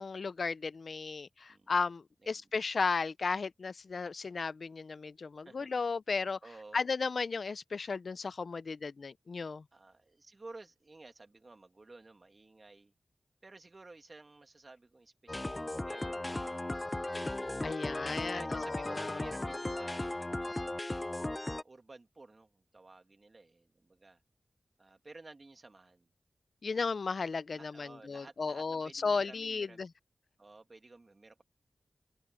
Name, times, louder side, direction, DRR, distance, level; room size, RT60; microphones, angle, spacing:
voice 1, 0.0-6.4 6.7-9.6 17.6-19.3 26.6-29.9, left 4 dB, 70° left, 0.6 m, -35 dB
voice 2, 5.4-5.8 6.4-6.9 9.7-12.9 13.4-16.8 18.3-20.7 21.3-24.2 24.8-26.1 27.5-29.8 30.4-31.4, right 3 dB, 50° right, 2.5 m, -54 dB
sound 1, 15.3-21.6, left 1 dB, 25° left, 0.7 m, -36 dB
cardioid pair, 40°, 0 cm